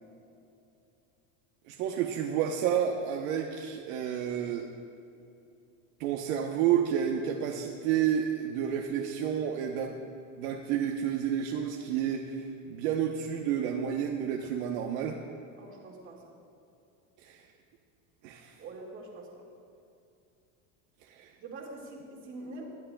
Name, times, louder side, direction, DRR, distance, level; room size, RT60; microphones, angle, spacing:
voice 1, 1.7-4.7 6.0-10.0 10.4-15.2 17.2-17.4 18.2-18.6 21.1-21.3, right 9 dB, 75° right, 1 dB, 1.0 m, -30 dB
voice 2, 15.6-16.4 18.6-19.5 21.4-22.6, right 2 dB, 30° right, -1 dB, 2.0 m, -44 dB
20.5 x 11.5 x 2.3 m, 2.6 s
cardioid pair, 160°, 41 cm